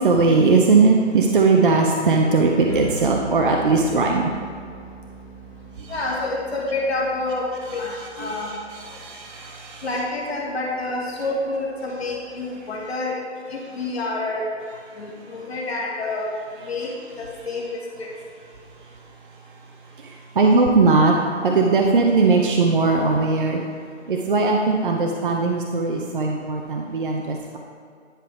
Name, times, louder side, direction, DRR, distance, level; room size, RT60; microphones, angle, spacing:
voice 1, 0.0-4.3 5.8-5.9 7.7-9.9 20.0-21.1 21.4-23.6 24.1-27.6, right 3 dB, 45° right, 1 dB, 0.6 m, -19 dB
sound 1, 2.7-12.7, right 2 dB, 20° left, 0.7 m, -41 dB
voice 2, 5.9-7.4 7.7-8.6 9.8-13.1 13.5-14.4 15.0-16.3 16.7-16.9 17.2-18.1, left 2 dB, 60° left, -2 dB, 1.7 m, -28 dB
10.0 x 5.2 x 3.4 m, 2.3 s
hypercardioid pair, 170°, 36 cm